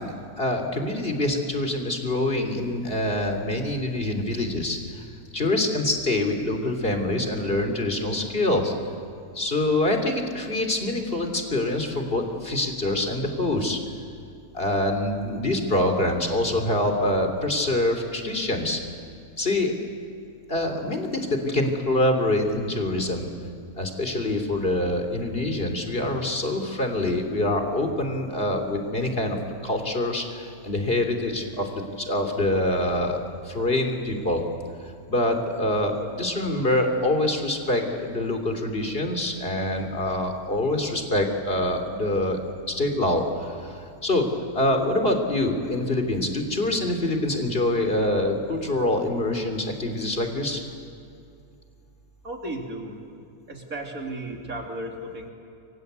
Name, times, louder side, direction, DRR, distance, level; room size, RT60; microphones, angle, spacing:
voice 1, 0.0-5.0 5.3-8.7 9.3-13.8 14.5-18.8 19.4-19.7 20.5-23.3 23.8-29.4 29.6-33.2 33.4-34.4 35.1-44.3 44.5-50.6, left 1 dB, 40° left, 4 dB, 3.4 m, -25 dB
voice 2, 52.2-53.0 53.5-55.3, right 1 dB, 70° right, 1 dB, 3.8 m, -34 dB
29.5 x 24.5 x 8.2 m, 2.5 s
omnidirectional pair, 1.5 m